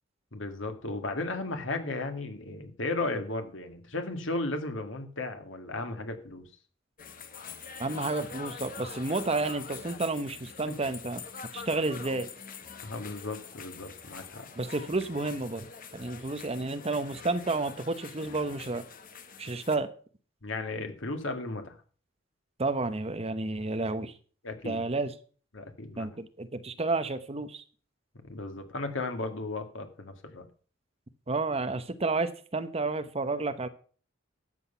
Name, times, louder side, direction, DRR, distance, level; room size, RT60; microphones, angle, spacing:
voice 1, 0.3-6.5 10.7-10.8 12.8-14.5 20.4-21.8 24.4-24.8 25.5-26.1 28.2-30.4, left 2 dB, 85° left, 6 dB, 2.0 m, -35 dB
sound 1, 7.0-19.8, left 6 dB, 45° left, 1.4 m, -44 dB
voice 2, 7.8-11.2 11.5-12.3 14.6-15.7 15.9-18.8 19.4-19.9 22.6-24.1 24.6-25.1 26.0-27.6 31.3-33.7, right 3 dB, 30° right, 11 dB, 0.9 m, -31 dB
12.5 x 8.0 x 5.6 m, 0.42 s
head